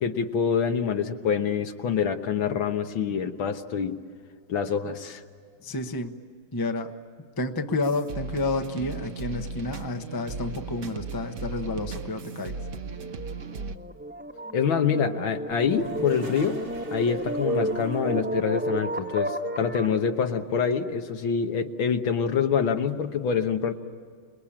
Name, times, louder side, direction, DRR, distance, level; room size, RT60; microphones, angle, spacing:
voice 1, 0.0-4.0 4.5-5.2 14.5-16.6 16.9-23.7, left 6 dB, 75° left, 7 dB, 2.0 m, -26 dB
voice 2, 5.6-6.1 6.5-7.0 7.4-12.6, left 2 dB, 15° left, 6 dB, 0.7 m, -30 dB
sound 1, 7.8-13.8, right 4 dB, 50° right, 1.0 m, -36 dB
sound 2, 12.6-20.0, right 1 dB, 5° right, 1.0 m, -32 dB
Toilet flush, 15.5-18.6, right 1 dB, 85° right, 5.6 m, -42 dB
28.5 x 21.0 x 8.8 m, 2.1 s
omnidirectional pair, 2.3 m